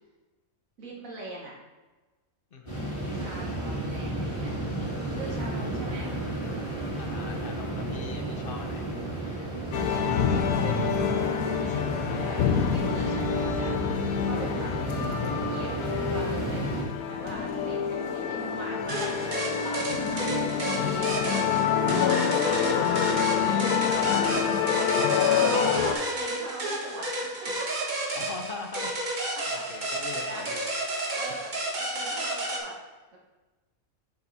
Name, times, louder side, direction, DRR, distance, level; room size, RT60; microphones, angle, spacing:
voice 1, 0.8-1.5 3.1-4.6 5.1-6.1 9.7-11.6 11.9-21.2 21.8-22.5 25.9-27.9 29.5-29.6 30.2-30.5 31.1-31.5 31.8-32.7 33.1-33.2, right 2 dB, 65° right, -3 dB, 1.7 m, -42 dB
voice 2, 2.5-2.9 7.0-8.9 22.4-22.8 23.3-25.5 28.1-28.9 29.5-30.7, left 4 dB, 50° left, 3 dB, 0.7 m, -41 dB
sound 1, 2.7-16.8, right 1 dB, 20° left, 2.0 m, -33 dB
sound 2, 9.7-25.9, left 7 dB, 85° left, 1.2 m, -27 dB
sound 3, 18.9-32.6, right 2 dB, 35° right, 1.2 m, -32 dB
7.0 x 5.4 x 4.0 m, 1.2 s
omnidirectional pair, 1.5 m